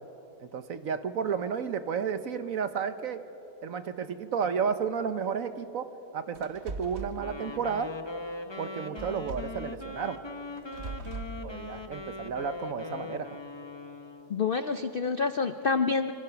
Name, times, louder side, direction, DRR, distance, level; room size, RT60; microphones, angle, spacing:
voice 1, 0.4-3.2 3.6-5.9 6.1-7.9 8.6-10.2 11.4-13.4, right 6 dB, 55° right, 10 dB, 1.2 m, -32 dB
sound 1, 6.3-7.2 9.0-9.6 10.6-11.4, right 3 dB, 40° right, 1.4 m, -39 dB
Wind instrument woodwind instrument, 7.1-14.4, left 3 dB, 20° left, 0.9 m, -40 dB
voice 2, 14.3-16.1, left 4 dB, 70° left, 9 dB, 0.5 m, -27 dB
26.5 x 25.5 x 5.8 m, 2.9 s
omnidirectional pair, 1.8 m